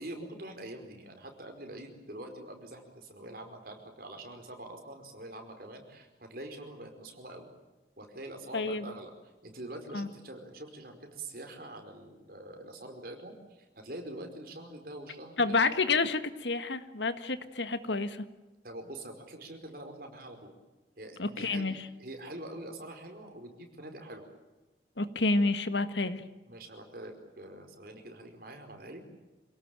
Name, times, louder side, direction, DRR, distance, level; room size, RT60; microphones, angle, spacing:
voice 1, 0.0-7.5 8.0-9.1 9.4-15.7 18.6-20.5 21.0-24.3 26.5-29.0, right 1 dB, 55° right, 4 dB, 5.0 m, -45 dB
voice 2, 8.5-8.9 9.9-10.1 15.4-18.2 21.2-21.8 25.0-26.2, left 3 dB, 90° left, 11 dB, 1.7 m, -29 dB
27.5 x 18.0 x 9.1 m, 1.1 s
head